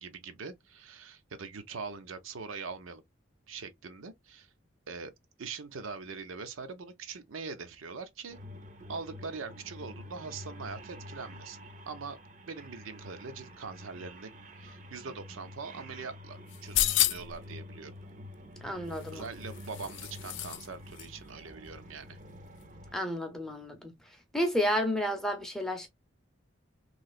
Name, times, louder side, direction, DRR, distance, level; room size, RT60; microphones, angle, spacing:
voice 1, 0.0-3.0 3.5-4.5 4.9-5.1 5.4-8.4 8.9-11.6 11.8-12.2 12.5-17.9 19.1-22.2, right 4 dB, 80° right, 0.6 m, -42 dB
sound 1, 8.3-22.9, left 1 dB, 40° right, 0.6 m, -48 dB
sound 2, 16.5-17.4 18.9-20.7 20.9-21.1, left 14 dB, 65° left, 0.3 m, -30 dB
voice 2, 18.6-19.3 22.9-23.9 24.3-25.9, equal, ahead, 0.6 m, -31 dB
3.1 x 2.8 x 2.3 m
head